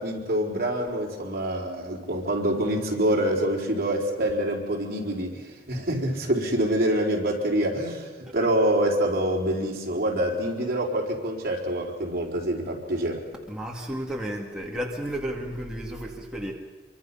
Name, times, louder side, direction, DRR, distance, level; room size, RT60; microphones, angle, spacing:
voice 1, 0.0-13.2, right 1 dB, 55° right, -1 dB, 4.3 m, -26 dB
voice 2, 13.5-16.5, equal, 5° right, -2 dB, 2.1 m, -32 dB
26.0 x 24.0 x 5.7 m, 1.3 s
head